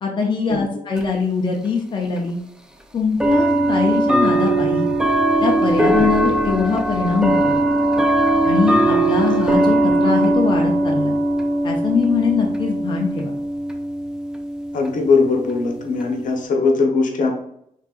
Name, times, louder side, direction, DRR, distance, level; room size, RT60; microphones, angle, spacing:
voice 1, 0.0-2.4 2.9-4.9 5.4-7.6 8.4-11.2 11.6-13.3, left 5 dB, 35° left, 0 dB, 0.7 m, -22 dB
sound 1, 1.0-1.1 2.2-2.3 3.2-16.4, right 1 dB, 5° right, 0.5 m, -20 dB
voice 2, 6.0-6.3 14.7-17.3, left 4 dB, 65° left, 2 dB, 1.0 m, -20 dB
5.3 x 3.7 x 2.5 m, 0.73 s
cardioid pair, 115°, 14 cm